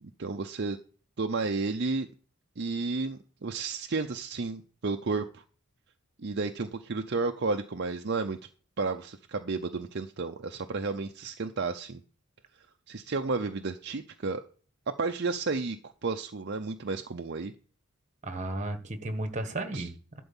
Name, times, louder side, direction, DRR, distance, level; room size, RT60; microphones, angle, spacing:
voice 1, 0.0-0.8 1.2-2.1 2.6-5.4 6.2-8.4 8.8-12.0 12.9-14.4 14.9-17.5 19.7-19.9, right 3 dB, 50° right, 5 dB, 0.7 m, -32 dB
voice 2, 18.2-20.2, right 2 dB, 35° right, 8 dB, 1.4 m, -34 dB
12.0 x 4.6 x 7.2 m, 0.41 s
head